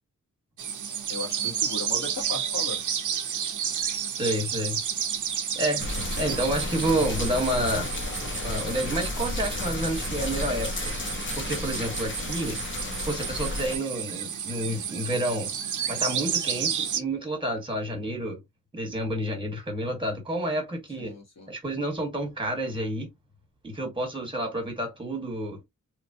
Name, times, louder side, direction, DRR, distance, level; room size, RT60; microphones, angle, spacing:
sound 1, 0.6-17.0, right 8 dB, 65° right, 0.6 m, -32 dB
voice 1, 1.1-2.8 21.0-21.5, left 3 dB, 55° left, 1.3 m, -36 dB
voice 2, 4.2-4.8 5.5-5.8 6.2-7.9 8.4-10.9 11.4-12.6 13.0-15.5 15.9-18.4 18.7-21.1 21.5-23.1 23.6-25.6, right 1 dB, 15° right, 1.4 m, -29 dB
sound 2, 5.8-13.8, left 2 dB, 40° left, 0.8 m, -32 dB
3.0 x 2.4 x 2.7 m
wide cardioid pair, 120°, 32 cm